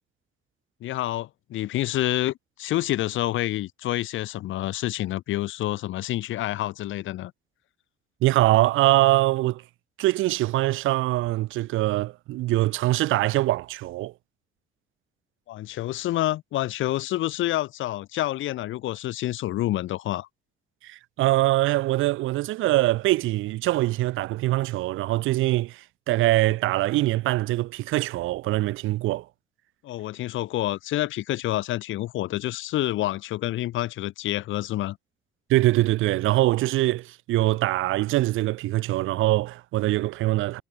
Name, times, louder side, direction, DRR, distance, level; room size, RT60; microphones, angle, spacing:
voice 1, 0.8-7.3 15.5-20.3 29.8-35.0, left 15 dB, 75° left, 0.8 m, -28 dB
voice 2, 8.2-9.6 10.0-14.1 20.8-29.3 35.5-40.6, right 17 dB, 85° right, 0.6 m, -23 dB
cardioid pair, 90°, 20 cm